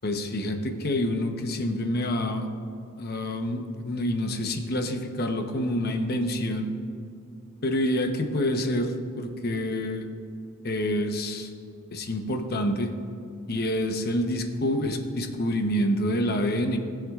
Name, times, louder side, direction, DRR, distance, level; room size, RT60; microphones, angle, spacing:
voice 1, 0.0-2.5 3.0-6.7 7.6-10.1 10.6-11.5 11.9-12.9 13.5-16.8, left 1 dB, 50° left, 5 dB, 0.9 m, -27 dB
19.5 x 7.4 x 2.4 m, 2.6 s
head